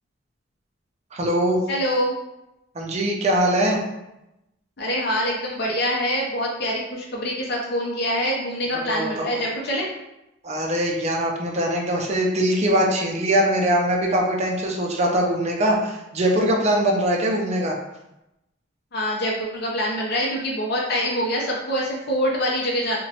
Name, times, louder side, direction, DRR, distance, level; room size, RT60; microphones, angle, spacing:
voice 1, 1.1-1.6 2.7-3.8 8.9-9.4 10.4-17.8, right 1 dB, 35° right, 0 dB, 0.4 m, -22 dB
voice 2, 1.7-2.2 4.8-9.9 18.9-23.0, equal, 55° left, -3 dB, 0.5 m, -25 dB
2.9 x 2.1 x 2.8 m, 0.90 s
head